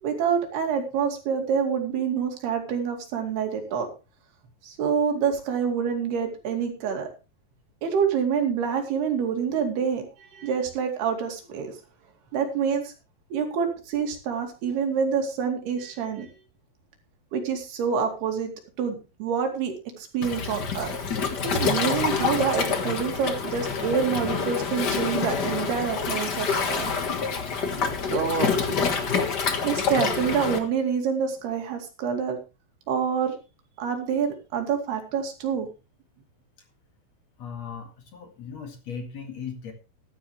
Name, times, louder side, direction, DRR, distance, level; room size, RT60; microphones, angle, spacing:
voice 1, 0.0-3.9 4.6-7.1 7.8-10.0 10.3-11.7 12.3-12.9 13.3-16.3 17.3-18.5 18.8-21.0 21.4-26.9 28.0-28.5 29.6-32.4 32.9-33.4 33.8-35.7, right 6 dB, 85° right, 4 dB, 4.4 m, -27 dB
Waves surf, 20.2-30.6, left 5 dB, 70° left, 0.9 m, -27 dB
voice 2, 37.4-39.7, left 6 dB, 50° left, 5 dB, 2.9 m, -37 dB
14.5 x 12.0 x 3.3 m, 0.30 s
omnidirectional pair, 4.4 m